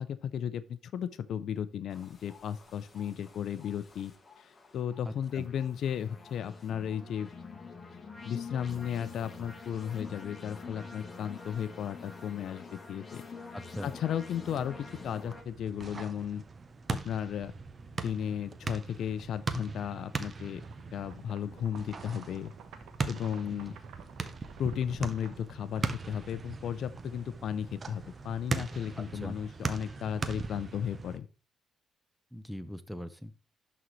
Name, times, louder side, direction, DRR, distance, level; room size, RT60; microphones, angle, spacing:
voice 1, 0.0-7.3 8.2-13.3 13.8-16.4 16.9-17.5 18.0-20.6 20.9-22.5 23.0-23.8 24.6-31.3, left 9 dB, 70° left, 14 dB, 0.5 m, -35 dB
sound 1, 1.9-15.4, left 4 dB, 30° left, 1.3 m, -47 dB
voice 2, 5.0-5.5 13.5-13.9 29.0-29.4 32.3-33.3, equal, ahead, 13 dB, 0.6 m, -41 dB
sound 2, 14.4-31.2, right 4 dB, 35° right, 0.7 m, -40 dB
sound 3, 20.5-26.7, right 7 dB, 85° right, 0.9 m, -53 dB
11.0 x 3.9 x 3.1 m, 0.35 s
cardioid pair, 90°, 0 cm